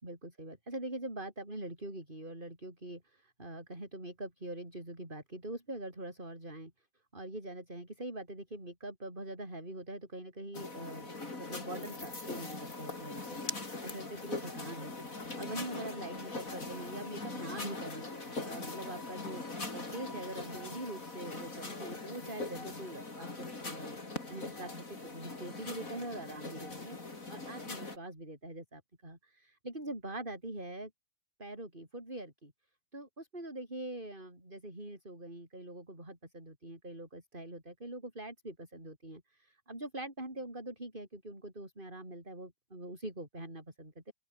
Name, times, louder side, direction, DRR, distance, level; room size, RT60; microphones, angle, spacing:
voice 1, 0.0-6.7 7.1-18.1 18.4-19.4 19.7-24.0 24.3-27.0 27.3-30.9 31.4-32.5 32.9-44.1, right 1 dB, 10° right, 7.2 m, -44 dB
Copy Machine at Work, 10.5-28.0, left 3 dB, 20° left, 4.2 m, -41 dB
open air
omnidirectional pair, 4.4 m